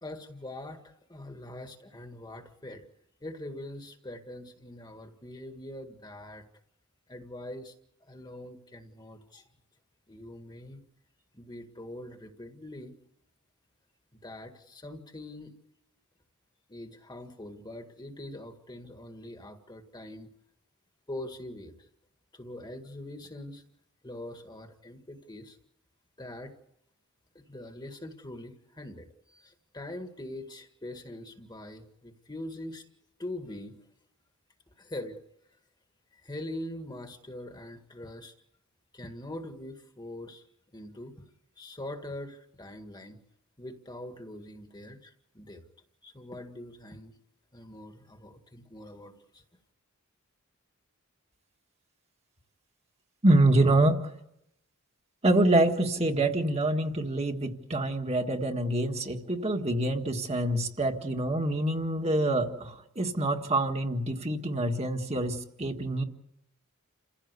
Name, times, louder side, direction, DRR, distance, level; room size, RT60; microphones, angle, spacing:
voice 1, 0.0-2.9 3.2-6.4 7.1-7.7 8.0-9.5 10.1-10.8 11.3-13.0 14.2-15.5 16.7-20.3 21.1-21.7 22.3-23.6 24.0-25.6 26.2-26.5 27.4-32.8 33.2-33.8 34.8-35.2 36.1-38.3 38.9-40.5 40.7-41.1 41.6-43.2 43.6-45.6 46.0-47.1 47.5-49.4, left 1 dB, 20° left, 6 dB, 1.8 m, -43 dB
voice 2, 53.2-54.0 55.2-66.0, right 1 dB, 30° right, 3 dB, 1.7 m, -26 dB
29.0 x 16.0 x 8.2 m, 0.82 s
head